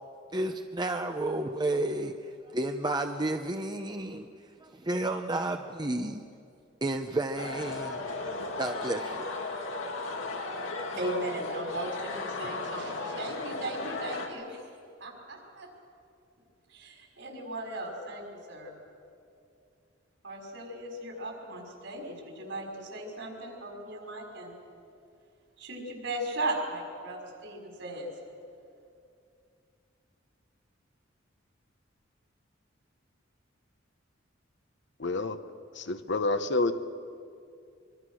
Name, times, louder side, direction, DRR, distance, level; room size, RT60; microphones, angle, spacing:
voice 1, 0.3-4.3 4.6-6.2 6.8-8.0 8.6-9.3, right 2 dB, 20° right, 5 dB, 0.8 m, -31 dB
sound 1, 7.4-14.3, left 3 dB, 85° left, 2.7 m, -35 dB
voice 2, 10.9-14.6 15.0-15.7 16.7-18.8 20.2-24.6 25.6-28.1, right 1 dB, 70° right, 1 dB, 5.4 m, -37 dB
voice 3, 35.0-35.4 35.7-36.7, left 2 dB, 65° left, 10 dB, 1.1 m, -28 dB
24.5 x 23.5 x 6.4 m, 2.4 s
head